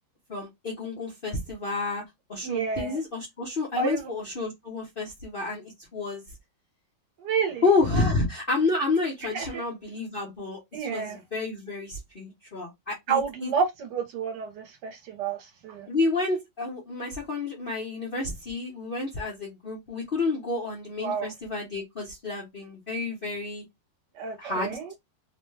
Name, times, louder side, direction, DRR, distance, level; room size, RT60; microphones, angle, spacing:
voice 1, 0.3-2.0 2.3-6.2 7.6-13.5 15.9-23.6 24.4-25.0, left 3 dB, 50° left, 0.7 m, -30 dB
voice 2, 2.4-3.0 3.8-4.1 7.2-7.6 7.9-8.1 9.2-9.6 10.7-11.2 13.1-15.9 21.0-21.3 24.2-24.9, right 6 dB, 70° right, 1.3 m, -30 dB
3.1 x 2.2 x 3.1 m
omnidirectional pair, 2.0 m